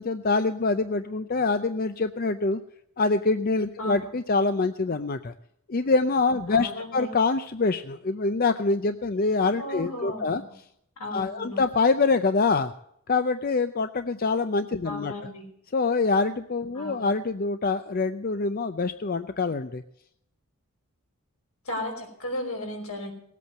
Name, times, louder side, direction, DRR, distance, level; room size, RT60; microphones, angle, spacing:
voice 1, 0.0-2.6 3.0-5.3 5.7-10.4 11.1-12.7 13.1-15.1 15.7-19.8, left 3 dB, 40° left, 10 dB, 0.5 m, -25 dB
voice 2, 3.8-4.1 6.5-7.1 9.6-10.5 11.0-11.6 14.8-15.4 16.7-17.1 21.7-23.1, left 1 dB, 80° left, 2 dB, 5.3 m, -35 dB
19.0 x 8.4 x 7.7 m, 0.74 s
head